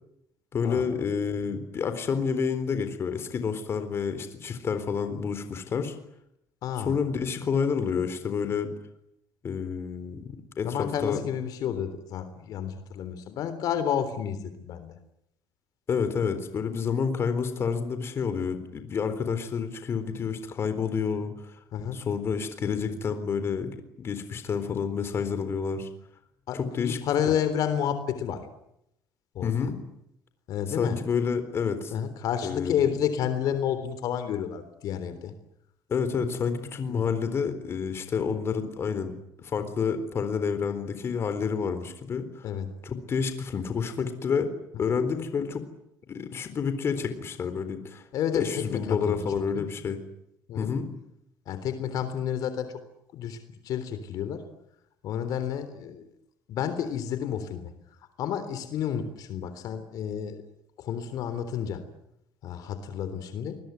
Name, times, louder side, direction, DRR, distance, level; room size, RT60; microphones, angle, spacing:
voice 1, 0.5-6.0 6.9-8.7 9.4-11.2 15.9-21.3 21.9-25.9 26.5-27.0 29.4-29.8 30.8-31.9 32.4-32.8 35.9-42.5 42.8-44.5 44.8-45.6 46.1-48.0 48.3-50.0 50.6-50.9, left 6 dB, 40° left, 10 dB, 4.0 m, -29 dB
voice 2, 6.6-7.0 10.6-14.9 21.7-22.0 26.5-28.5 29.3-29.7 30.5-31.0 31.9-35.3 36.9-37.2 39.6-39.7 42.4-42.7 44.9-45.0 48.1-49.2 49.5-49.7 50.5-50.7 51.5-52.7 53.1-54.5 55.0-56.1 56.5-57.7 58.2-60.4 60.8-61.8 62.4-63.6, left 9 dB, 65° left, 11 dB, 3.6 m, -30 dB
28.5 x 21.5 x 9.4 m, 0.79 s
cardioid pair, 130°, 7 cm